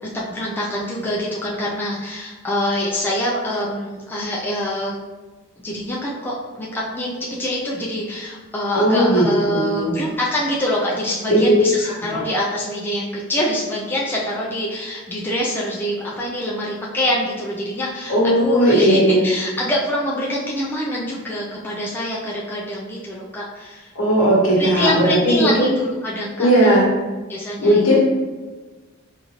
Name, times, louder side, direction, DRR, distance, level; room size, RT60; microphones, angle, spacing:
voice 1, 0.0-5.0 5.6-23.9 24.6-26.9 27.3-28.0, left 1 dB, 10° left, -5 dB, 0.4 m, -25 dB
voice 2, 8.7-9.3 9.5-10.0 11.3-11.6 12.1-12.2 18.1-19.2 23.9-25.7 26.4-26.9 27.6-28.0, right 1 dB, 80° left, -4 dB, 1.3 m, -16 dB
4.1 x 2.5 x 3.0 m, 1.3 s
head